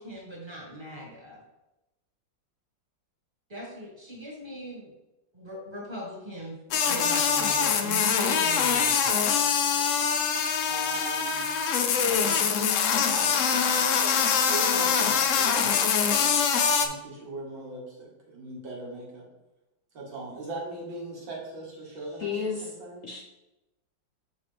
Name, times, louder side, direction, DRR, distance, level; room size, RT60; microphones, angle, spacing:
voice 1, 0.0-1.4 3.5-4.9 5.3-6.6 6.9-9.3, equal, 15° right, -3 dB, 1.8 m, -39 dB
sound 1, 6.7-16.9, left 6 dB, 90° left, 0.6 m, -24 dB
voice 2, 10.7-11.5 14.3-15.8 16.7-19.3 19.9-22.3 22.6-23.1, right 2 dB, 80° right, -3 dB, 2.5 m, -39 dB
voice 3, 22.2-22.8 23.0-23.2, left 5 dB, 60° left, 1 dB, 0.8 m, -31 dB
6.4 x 5.2 x 3.4 m, 0.98 s
omnidirectional pair, 2.1 m